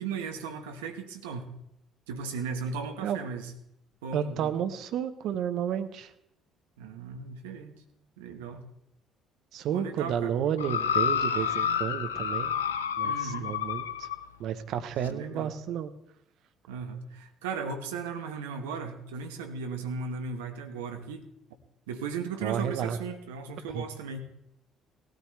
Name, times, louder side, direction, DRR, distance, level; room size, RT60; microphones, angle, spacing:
voice 1, 0.0-1.5 2.1-3.5 4.0-4.5 6.8-7.7 8.2-8.7 9.7-10.3 13.0-13.5 14.9-15.5 16.7-21.2 21.9-24.2, right 5 dB, 80° right, 6 dB, 1.2 m, -36 dB
voice 2, 4.1-6.1 9.5-12.5 13.0-14.1 14.4-15.9 22.4-23.0 23.7-23.8, right 9 dB, 60° right, 10 dB, 0.9 m, -31 dB
sound 1, 10.6-14.2 15.1-15.2, left 7 dB, 85° left, 0.5 m, -29 dB
18.0 x 13.0 x 3.3 m, 0.78 s
hypercardioid pair, 50°, 0 cm